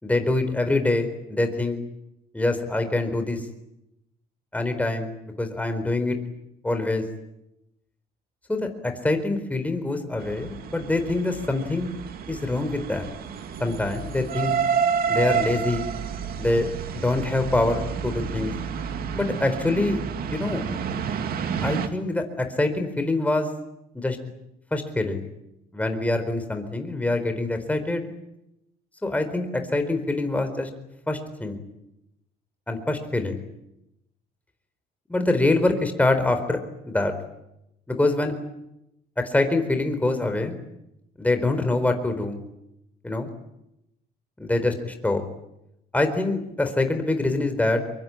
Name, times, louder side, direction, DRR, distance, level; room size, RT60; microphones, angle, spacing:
voice 1, 0.0-1.8 2.3-3.4 4.5-6.2 6.6-7.0 8.5-11.9 12.3-13.1 13.6-14.5 15.1-15.9 16.4-16.7 16.9-18.5 19.1-20.0 20.3-20.6 21.6-23.5 23.9-24.2 24.7-25.2 25.7-28.1 29.0-30.7 31.1-31.6 32.7-33.4 35.1-36.6 36.9-37.1 37.9-38.3 39.2-40.6 41.2-42.4 43.0-43.3 44.4-45.2 45.9-47.8, left 2 dB, 10° left, 6 dB, 4.3 m, -25 dB
sound 1, 10.2-21.9, right 7 dB, 60° right, 2.6 m, -29 dB
24.0 x 23.5 x 9.0 m, 0.85 s
cardioid pair, 110°, 17 cm